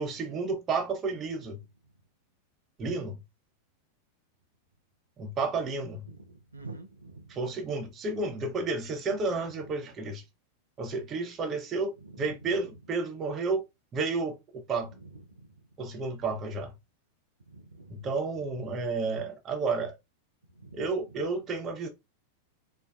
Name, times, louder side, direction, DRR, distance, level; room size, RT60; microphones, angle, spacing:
voice 1, 0.0-1.6 2.8-3.2 5.2-6.0 7.3-10.2 10.8-13.6 13.9-14.9 15.8-16.7 17.9-19.9 20.7-21.9, right 3 dB, 25° right, 0.9 m, -31 dB
voice 2, 6.1-7.3 17.5-18.0 20.6-20.8, right 3 dB, 80° right, 0.5 m, -46 dB
4.0 x 2.1 x 2.3 m
figure-of-eight pair, 90°, 0 cm